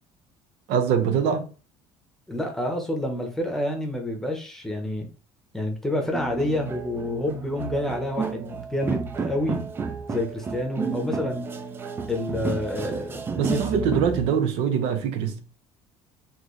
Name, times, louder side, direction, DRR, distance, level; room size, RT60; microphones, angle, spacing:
voice 1, 0.7-1.5 13.4-15.4, right 7 dB, 70° right, 0.8 m, -23 dB
voice 2, 2.3-5.1 5.5-9.6 10.1-11.5 12.1-13.9, left 1 dB, 5° left, 0.8 m, -28 dB
sound 1, 6.1-14.3, right 5 dB, 20° right, 0.4 m, -31 dB
4.3 x 2.9 x 3.1 m
cardioid pair, 155°, 10 cm